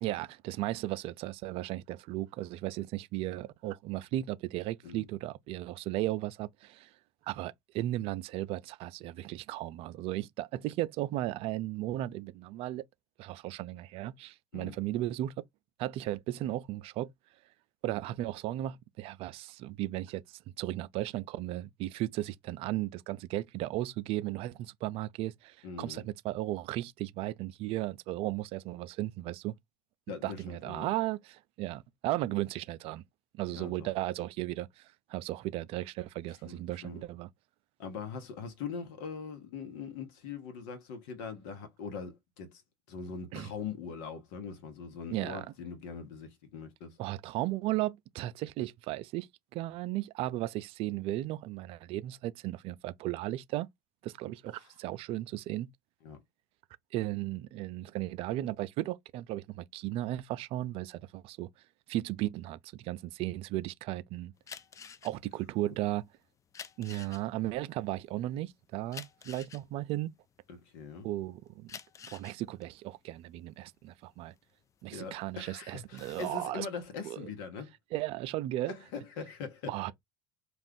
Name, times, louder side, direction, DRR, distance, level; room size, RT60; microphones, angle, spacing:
voice 1, 0.0-6.9 7.3-12.8 13.2-15.4 15.8-17.1 17.8-20.2 20.6-29.5 30.2-33.0 33.4-37.3 43.3-43.5 45.1-45.4 47.0-49.3 49.5-53.7 54.0-55.7 56.9-61.5 61.9-64.3 65.0-66.1 66.8-70.1 71.0-71.7 72.1-74.3 74.8-76.7 77.0-77.3 77.9-78.7 79.7-79.9, right 15 dB, 55° right, 0.4 m, -35 dB
voice 2, 25.6-26.1 30.1-30.9 33.5-33.9 36.4-37.0 37.8-42.6 42.9-47.0 54.6-54.7 56.0-56.2 70.5-71.1 74.9-77.7 78.7-79.9, left 5 dB, 70° left, 1.1 m, -42 dB
sound 1, 64.4-71.0 71.5-75.3 75.7-76.5, left 7 dB, 25° left, 0.4 m, -49 dB
2.5 x 2.3 x 3.5 m
hypercardioid pair, 90°, 12 cm